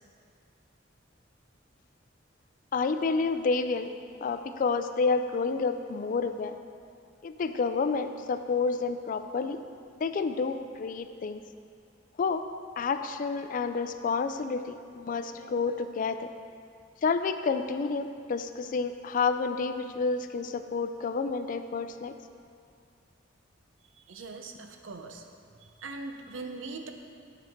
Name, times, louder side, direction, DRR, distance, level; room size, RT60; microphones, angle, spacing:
voice 1, 2.7-3.9 4.2-6.5 7.2-9.6 9.9-11.4 12.2-12.5 12.8-16.3 17.0-22.2, left 4 dB, 45° left, 9 dB, 0.3 m, -29 dB
voice 2, 23.9-26.9, right 3 dB, 85° right, 5 dB, 0.6 m, -41 dB
9.5 x 5.9 x 3.6 m, 2.3 s
head